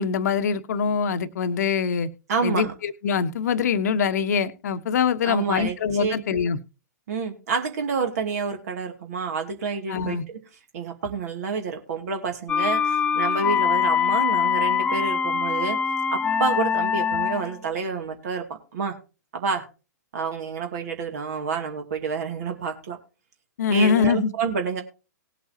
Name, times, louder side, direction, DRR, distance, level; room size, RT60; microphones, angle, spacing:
voice 1, 0.0-2.1 2.4-6.6 9.9-10.2 23.6-24.3, left 6 dB, 55° left, 11 dB, 1.1 m, -23 dB
voice 2, 2.3-2.7 5.2-6.1 7.1-10.4 10.7-15.8 16.1-19.0 19.3-19.6 20.1-23.0 23.7-24.8, right 5 dB, 55° right, 4 dB, 2.4 m, -28 dB
sound 1, 12.5-17.6, left 7 dB, 10° left, 0.7 m, -23 dB
19.0 x 8.4 x 2.8 m, 0.31 s
figure-of-eight pair, 115°, 10 cm